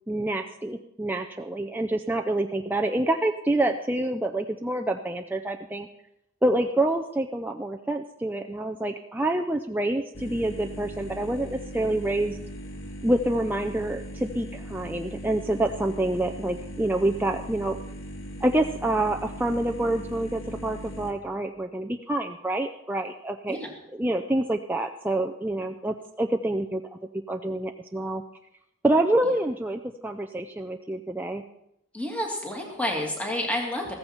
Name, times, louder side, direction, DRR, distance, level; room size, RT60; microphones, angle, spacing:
voice 1, 0.1-5.9 6.4-12.4 13.0-17.8 18.4-23.6 24.0-26.8 27.3-28.2 28.8-31.4, right 1 dB, 10° right, 3 dB, 0.4 m, -27 dB
sound 1, 10.1-21.1, equal, 65° left, 1.6 m, -39 dB
voice 2, 31.9-33.9, left 1 dB, 5° left, 0 dB, 2.3 m, -29 dB
15.0 x 14.5 x 4.4 m, 0.82 s
head